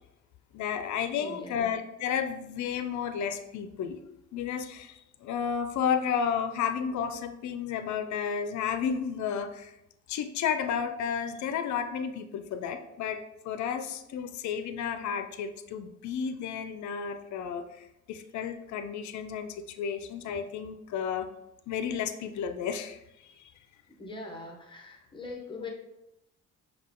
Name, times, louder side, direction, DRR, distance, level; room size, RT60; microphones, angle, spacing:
voice 1, 0.5-4.0 4.3-9.7 10.1-17.7 18.1-21.3 21.7-23.0, left 7 dB, 70° left, 9 dB, 0.5 m, -32 dB
voice 2, 1.2-1.7 24.0-25.7, left 3 dB, 15° left, 1 dB, 1.0 m, -42 dB
5.4 x 2.3 x 3.7 m, 0.88 s
cardioid pair, 90°, 30 cm